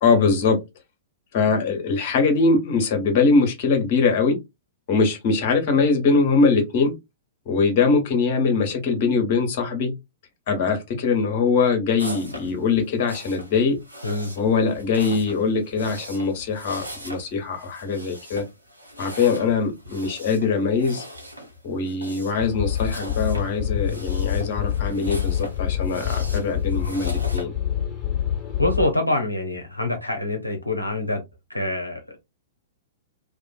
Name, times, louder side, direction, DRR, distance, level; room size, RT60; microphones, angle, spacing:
voice 1, 0.0-0.6 1.3-4.4 4.9-6.9 7.5-9.9 10.5-13.8 14.4-18.5 19.0-21.0 21.6-27.5, left 4 dB, 45° left, 0.9 m, -22 dB
sound 1, 12.0-27.4, equal, 85° right, 0.8 m, -40 dB
voice 2, 14.0-14.3 28.6-31.2 31.5-32.2, left 1 dB, 90° left, 0.5 m, -25 dB
sound 2, 22.4-28.9, left 10 dB, 20° left, 1.1 m, -26 dB
2.4 x 2.4 x 2.3 m
figure-of-eight pair, 105°, 0 cm